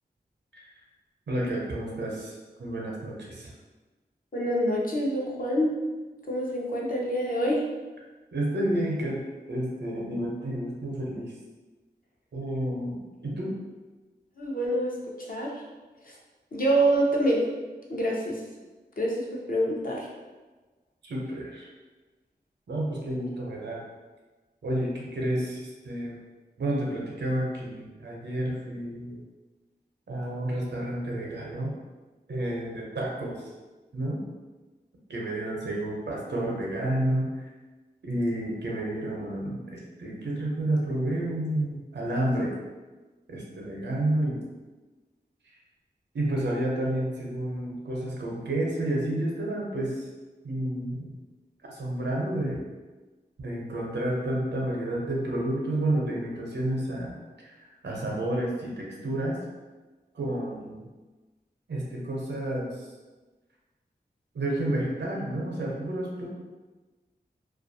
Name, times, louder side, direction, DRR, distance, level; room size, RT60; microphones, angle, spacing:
voice 1, 1.3-3.5 8.3-11.3 12.3-13.5 21.0-21.7 22.7-23.8 24.6-26.2 26.6-29.2 30.1-31.7 32.3-33.5 33.9-34.2 35.1-37.5 38.0-42.5 43.3-44.4 46.1-50.1 50.4-51.1 51.6-52.6 53.4-57.2 57.4-57.6 57.8-59.4 60.1-60.9 61.7-62.9 64.3-66.3, right 1 dB, 90° right, -3 dB, 0.6 m, -30 dB
voice 2, 4.3-5.7 6.3-7.6 14.4-15.6 16.0-16.1 16.5-17.4 17.9-18.4 19.0-20.1, right 1 dB, 55° left, -3 dB, 0.6 m, -26 dB
2.4 x 2.2 x 2.6 m, 1.2 s
cardioid pair, 40°, 18 cm